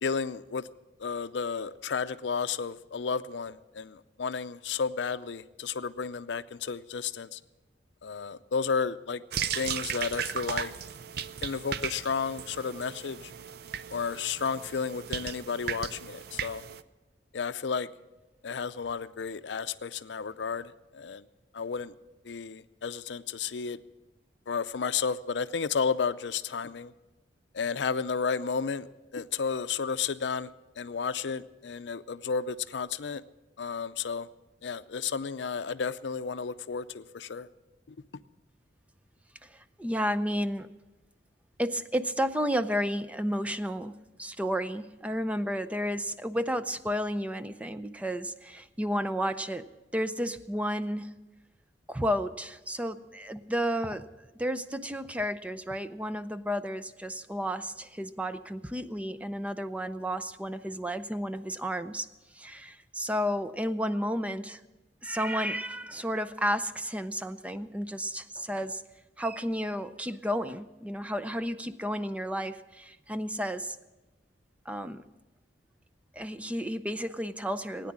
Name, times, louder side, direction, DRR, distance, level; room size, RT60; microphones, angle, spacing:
voice 1, 0.0-0.6 1.0-7.4 8.0-9.2 9.6-10.7 11.4-13.2 13.9-16.6 17.3-17.9 18.4-21.2 21.5-21.9 22.2-23.8 24.5-26.9 27.5-28.9 29.1-30.5 30.8-33.2 33.6-34.3 34.6-37.5 37.9-38.0, left 5 dB, 75° left, 13 dB, 0.5 m, -32 dB
sound 1, 9.3-16.8, right 8 dB, 60° right, 0.5 m, -36 dB
voice 2, 39.4-40.7 41.6-49.7 49.9-51.1 51.9-54.1 54.3-62.1 62.3-64.6 65.0-68.8 69.2-73.8 74.7-75.0 76.1-77.9, equal, 10° right, 11 dB, 0.5 m, -32 dB
17.5 x 9.6 x 7.3 m, 1.1 s
head